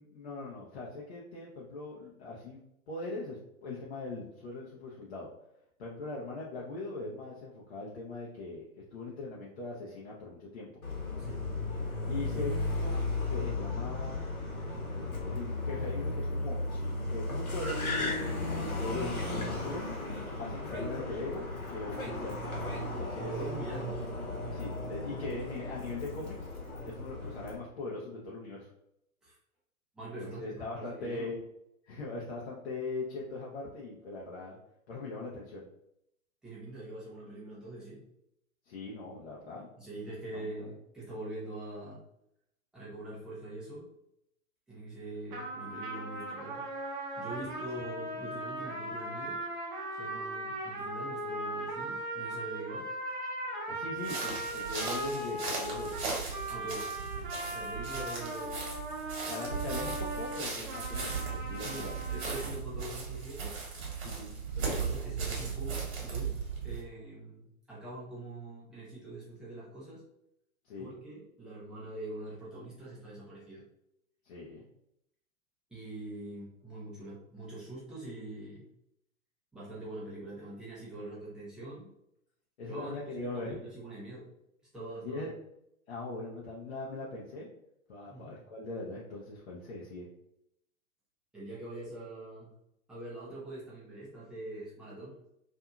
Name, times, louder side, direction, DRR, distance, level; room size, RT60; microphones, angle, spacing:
voice 1, 0.0-2.6 2.9-5.3 5.8-8.6 8.9-10.7 12.1-14.2 14.6-16.6 17.1-19.9 20.4-22.4 23.0-23.3 24.5-26.5 26.8-28.7 30.2-31.4 31.8-34.6 34.9-35.7 38.7-39.7 40.3-40.7 47.4-47.5 53.7-56.0 59.3-62.0 64.0-64.3 70.6-70.9 74.2-74.7 82.6-83.5 85.0-85.3 85.9-87.5 87.9-90.1, left 2 dB, 50° left, -5 dB, 0.7 m, -41 dB
Car, 10.8-27.6, left 2 dB, 75° left, 1.1 m, -35 dB
voice 2, 23.2-23.9 29.2-29.4 29.9-31.3 36.4-38.0 39.8-42.0 42.7-43.9 44.7-46.6 47.2-49.4 49.9-52.9 56.5-56.9 57.5-58.7 61.6-63.6 64.6-66.3 66.6-70.0 70.8-73.6 75.7-78.6 79.5-81.9 82.6-84.3 84.7-85.3 88.1-88.4 91.3-92.5 92.9-95.1, right 2 dB, ahead, -8 dB, 0.5 m, -43 dB
sound 1, 45.3-62.5, right 1 dB, 35° right, 0.8 m, -38 dB
sound 2, 54.0-66.8, right 5 dB, 50° right, 1.3 m, -37 dB
2.7 x 2.6 x 2.3 m, 0.79 s
figure-of-eight pair, 110°, 42 cm